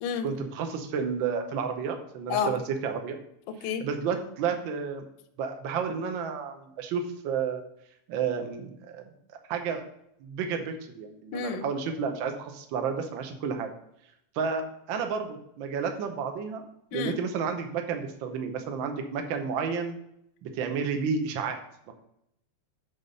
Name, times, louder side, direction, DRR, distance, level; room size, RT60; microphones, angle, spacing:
voice 1, 0.2-3.2 3.8-5.0 5.4-7.6 8.1-9.0 9.5-9.8 10.2-13.7 14.3-16.6 16.9-20.0 20.4-21.6, right 6 dB, 70° right, 5 dB, 1.1 m, -31 dB
voice 2, 3.5-3.9 11.3-11.6 16.9-17.2, left 6 dB, 70° left, 8 dB, 1.4 m, -30 dB
9.7 x 3.7 x 5.4 m, 0.76 s
omnidirectional pair, 3.4 m